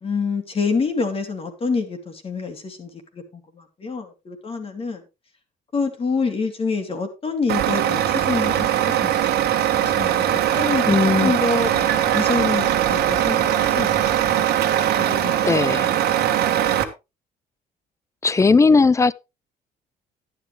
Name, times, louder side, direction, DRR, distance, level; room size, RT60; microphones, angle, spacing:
voice 1, 0.0-5.0 5.7-13.9 15.0-16.8, left 4 dB, 35° left, 2.9 m, -27 dB
Truck, 7.5-16.8, right 11 dB, 70° right, 1.5 m, -20 dB
voice 2, 10.9-11.3 15.4-15.9 18.2-19.1, left 4 dB, 15° left, 0.5 m, -17 dB
11.0 x 10.5 x 3.3 m
cardioid pair, 110°, 17 cm